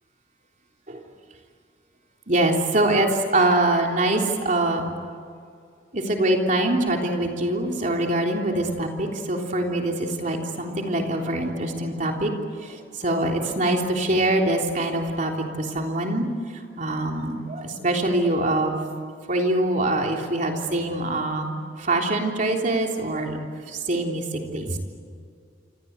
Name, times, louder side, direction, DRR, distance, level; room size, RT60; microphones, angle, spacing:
voice 1, 2.3-4.9 5.9-12.3 12.6-15.3 15.6-16.3 16.8-18.8 19.3-21.5 21.8-23.4 23.7-24.8, right 1 dB, 40° right, 1 dB, 3.5 m, -24 dB
28.0 x 25.5 x 8.2 m, 2.3 s
head